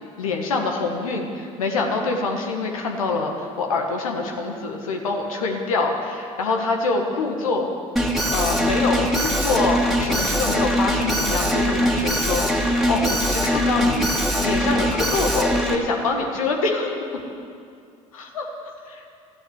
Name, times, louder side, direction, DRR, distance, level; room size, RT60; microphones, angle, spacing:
voice 1, 0.2-7.7 8.3-16.9 18.1-19.0, left 3 dB, 80° left, 2 dB, 1.5 m, -25 dB
Alarm, 8.0-15.8, equal, ahead, 2.3 m, -22 dB
13.5 x 10.5 x 9.4 m, 2.4 s
hypercardioid pair, 60°, 17 cm